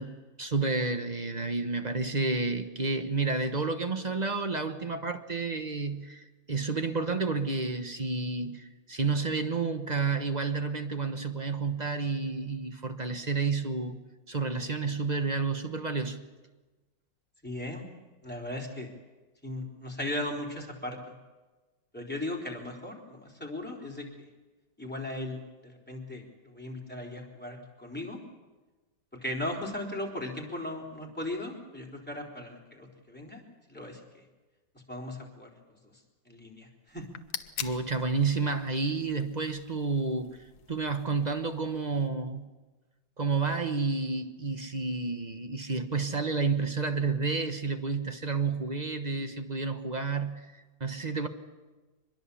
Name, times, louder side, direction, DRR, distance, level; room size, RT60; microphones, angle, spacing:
voice 1, 0.0-14.0 14.3-16.2 37.6-40.4 40.7-42.5 43.2-51.3, right 4 dB, 30° right, 1.0 m, -30 dB
voice 2, 17.4-17.9 18.2-18.9 19.4-21.1 21.9-24.1 24.8-25.4 25.9-28.2 29.2-33.4 33.7-34.0 34.9-35.5 36.3-37.0, left 1 dB, 5° left, 3.9 m, -37 dB
sound 1, 36.9-42.1, left 9 dB, 75° left, 1.7 m, -45 dB
24.5 x 21.5 x 7.1 m
omnidirectional pair, 2.1 m